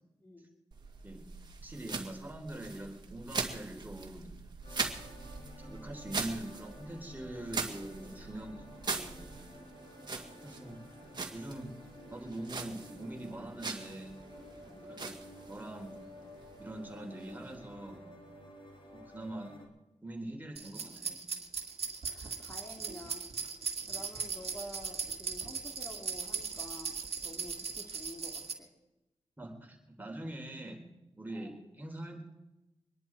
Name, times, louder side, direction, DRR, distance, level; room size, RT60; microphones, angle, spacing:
voice 1, 0.2-0.5 10.1-10.5 14.6-15.0 22.1-23.2 23.9-28.7 31.3-31.6, left 1 dB, 20° left, 1 dB, 2.4 m, -49 dB
sound 1, 0.7-18.0, right 4 dB, 40° right, 2.0 m, -42 dB
voice 2, 1.6-4.3 4.7-4.8 5.6-9.2 10.4-10.8 11.3-11.7 12.1-14.2 14.8-15.2 15.5-15.9 16.6-18.1 18.9-19.6 20.0-21.2 27.3-27.4 29.4-30.8 31.2-31.5 31.8-32.2, right 1 dB, 15° right, 1 dB, 3.7 m, -43 dB
sound 2, 4.6-19.7, equal, 50° left, 3.9 m, -52 dB
sound 3, 20.6-28.5, right 5 dB, 65° right, 1.9 m, -38 dB
24.5 x 10.5 x 4.7 m, 0.97 s
cardioid pair, 65°, 11 cm